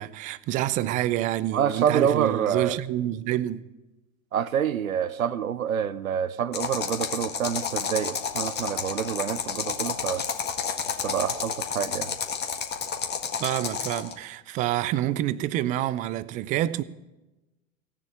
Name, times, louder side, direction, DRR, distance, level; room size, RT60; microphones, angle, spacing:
voice 1, 0.0-3.6 13.4-16.8, right 13 dB, 20° right, 0.4 m, -27 dB
voice 2, 1.5-2.8 4.3-10.3 10.9-12.1, right 8 dB, 80° right, 0.7 m, -27 dB
sound 1, 6.5-14.1, left 6 dB, 25° left, 1.8 m, -30 dB
16.5 x 7.3 x 8.7 m
figure-of-eight pair, 95°, 41 cm